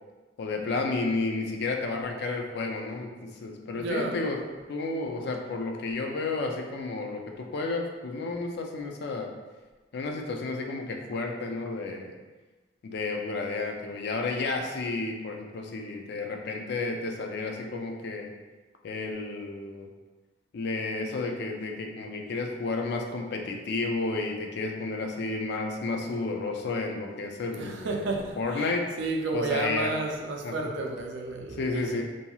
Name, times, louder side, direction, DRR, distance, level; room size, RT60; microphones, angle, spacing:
voice 1, 0.4-4.4 4.7-9.3 9.9-12.1 12.8-18.3 18.8-19.9 20.5-28.9 29.3-29.9 30.4-30.7 31.6-32.0, left 3 dB, 60° left, 2 dB, 0.4 m, -32 dB
voice 2, 3.7-4.2 27.6-32.0, right 2 dB, 70° right, 1 dB, 0.4 m, -32 dB
2.9 x 2.7 x 2.3 m, 1.3 s
head